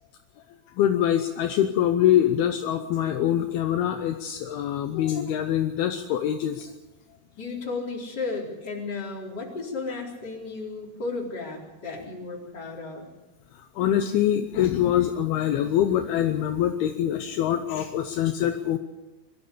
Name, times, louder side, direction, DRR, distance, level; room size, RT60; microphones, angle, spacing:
voice 1, 0.8-6.7 13.8-18.8, left 11 dB, 75° left, 6 dB, 2.6 m, -24 dB
voice 2, 7.4-13.1, left 3 dB, 25° left, -2 dB, 4.3 m, -34 dB
23.0 x 13.5 x 8.5 m, 1.1 s
omnidirectional pair, 5.0 m